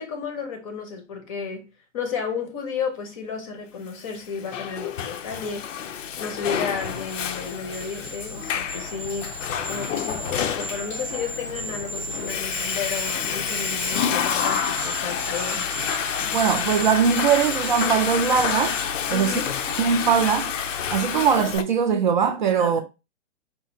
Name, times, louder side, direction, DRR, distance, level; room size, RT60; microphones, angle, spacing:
voice 1, 0.0-1.7 1.9-9.4 9.7-15.7 19.1-19.5 22.6-22.8, left 6 dB, 30° left, 0.6 m, -32 dB
Water / Toilet flush, 4.1-21.6, left 8 dB, 80° left, 0.6 m, -29 dB
sound 1, 6.8-21.1 21.4-21.6, right 1 dB, 15° right, 0.7 m, -36 dB
voice 2, 16.3-18.8 19.1-19.3 19.8-20.5 20.9-22.8, right 7 dB, 40° right, 0.4 m, -21 dB
4.3 x 2.4 x 2.7 m
hypercardioid pair, 155°, 37 cm